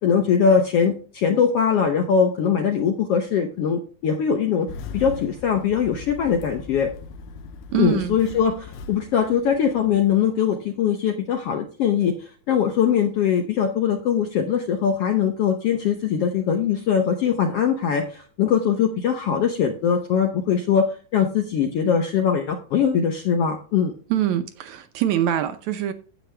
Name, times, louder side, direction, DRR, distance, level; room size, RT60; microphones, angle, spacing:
voice 1, 0.0-4.7 4.9-6.9 7.7-20.9 21.1-23.9, left 7 dB, 70° left, 1.4 m, -21 dB
Engine starting, 4.7-10.2, left 4 dB, 85° left, 2.4 m, -39 dB
voice 2, 7.7-8.2 24.1-25.9, right 11 dB, 75° right, 1.9 m, -24 dB
9.2 x 8.4 x 3.3 m
omnidirectional pair, 3.7 m